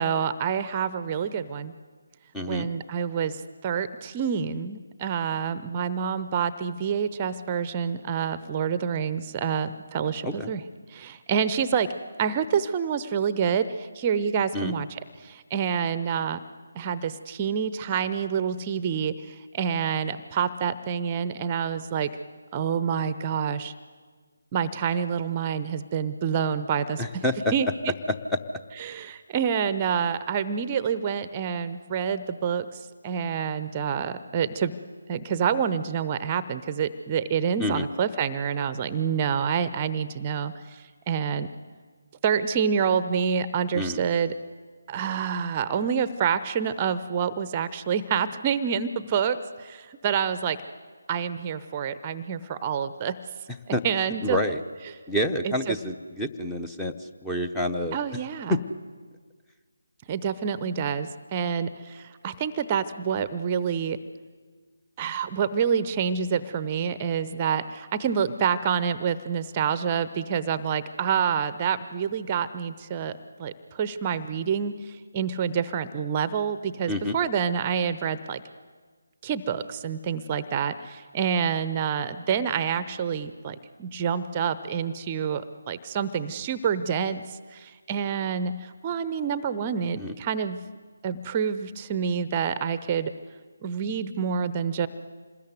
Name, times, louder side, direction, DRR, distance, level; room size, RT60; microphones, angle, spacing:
voice 1, 0.0-1.7 2.5-10.6 10.9-11.9 12.2-16.4 16.7-22.1 22.5-23.7 24.5-27.0 27.5-27.7 28.8-34.7 35.1-41.5 42.2-44.3 44.9-50.6 51.1-53.2 53.8-54.4 55.4-55.8 57.9-58.6 60.1-64.0 65.0-78.4 79.2-90.6 91.0-93.1 93.6-94.9, right 7 dB, 20° right, 13 dB, 0.8 m, -27 dB
voice 2, 2.3-2.7 10.2-10.5 14.5-14.7 27.0-27.5 28.3-28.4 37.6-37.8 43.7-44.0 53.7-53.8 54.2-54.6 55.1-58.0 58.5-58.6 76.9-77.2 90.0-90.1, left 1 dB, 5° left, 5 dB, 0.9 m, -28 dB
26.5 x 20.5 x 9.6 m, 1.5 s
figure-of-eight pair, 150°, 0 cm